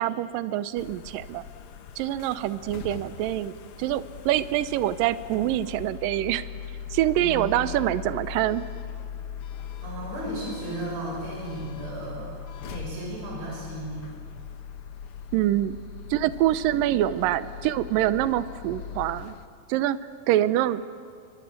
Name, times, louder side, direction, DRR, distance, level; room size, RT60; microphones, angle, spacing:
voice 1, 0.0-1.4 2.0-6.5 6.9-8.6 15.3-15.8 16.1-19.4 19.7-20.0 20.3-20.8, right 13 dB, 75° right, 14 dB, 2.4 m, -25 dB
sound 1, 0.8-19.5, left 7 dB, 80° left, 1.2 m, -40 dB
voice 2, 7.2-7.5 9.8-12.3 12.6-14.1, right 2 dB, 45° right, -2 dB, 7.6 m, -35 dB
28.5 x 24.5 x 8.6 m, 2.2 s
omnidirectional pair, 4.2 m